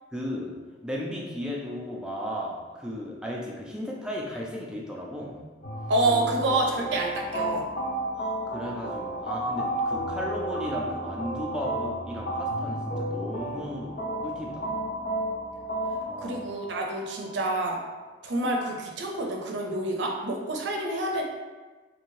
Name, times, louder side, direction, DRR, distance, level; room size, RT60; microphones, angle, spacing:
voice 1, 0.1-0.5 0.8-5.4 8.1-14.7 16.1-16.6, equal, 5° right, -3 dB, 0.4 m, -35 dB
sound 1, 5.6-18.6, right 1 dB, 55° left, 0.7 m, -32 dB
voice 2, 5.9-7.6 16.2-17.8 18.2-21.2, right 2 dB, 65° right, 1 dB, 0.5 m, -28 dB
2.8 x 2.7 x 3.0 m, 1.3 s
head